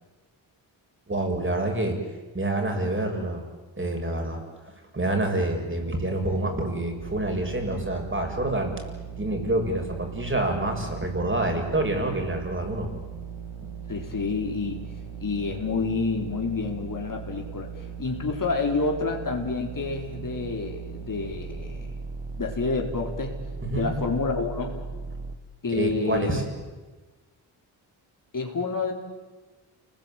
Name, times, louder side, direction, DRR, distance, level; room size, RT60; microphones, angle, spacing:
voice 1, 1.1-2.0 2.3-3.5 3.8-4.4 4.9-8.7 9.2-12.9 23.6-23.9 25.7-26.4, right 1 dB, 25° right, 3 dB, 6.9 m, -27 dB
sound 1, 7.0-25.4, right 5 dB, 75° right, 2.5 m, -38 dB
voice 2, 13.9-14.9 15.2-21.9 22.3-23.3 23.7-24.8 25.6-26.4 28.3-28.9, left 4 dB, 40° left, 2 dB, 4.4 m, -28 dB
29.0 x 20.5 x 9.1 m, 1.3 s
cardioid pair, 80°, 47 cm